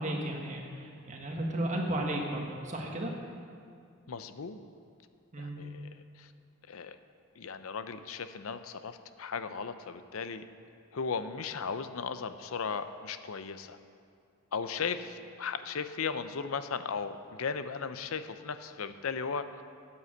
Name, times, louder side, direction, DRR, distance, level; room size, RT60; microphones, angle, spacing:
voice 1, 0.0-3.1 5.3-5.6, right 1 dB, 35° right, 0 dB, 1.5 m, -34 dB
voice 2, 4.1-4.6 5.4-5.9 6.2-6.3 6.7-7.0 7.4-10.4 10.9-13.8 14.5-19.6, left 5 dB, 75° left, 11 dB, 0.6 m, -36 dB
9.5 x 8.7 x 7.8 m, 2.3 s
head